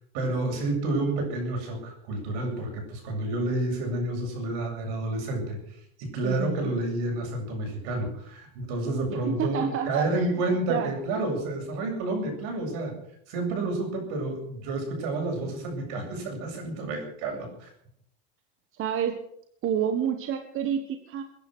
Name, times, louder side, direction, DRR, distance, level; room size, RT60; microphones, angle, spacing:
voice 1, 0.1-5.6 6.0-12.9 13.3-17.7, right 2 dB, 70° right, 3 dB, 7.8 m, -30 dB
voice 2, 6.2-6.7 9.1-10.3 10.7-10.9 18.7-19.2 19.6-21.2, right 8 dB, 40° right, 7 dB, 1.5 m, -29 dB
22.0 x 10.5 x 6.4 m, 0.70 s
supercardioid pair, 125°, 32 cm